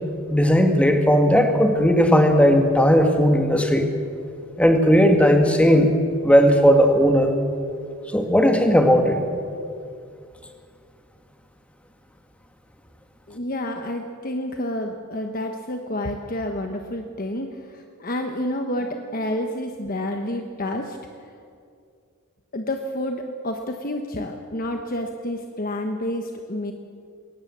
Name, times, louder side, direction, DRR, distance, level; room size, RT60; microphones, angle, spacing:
voice 1, 0.3-3.9 4.6-5.9 6.2-7.4 8.1-9.2, equal, 5° left, 4 dB, 1.9 m, -16 dB
voice 2, 13.3-21.0 22.5-26.7, left 1 dB, 40° left, 4 dB, 1.2 m, -29 dB
22.0 x 18.5 x 7.5 m, 2.3 s
head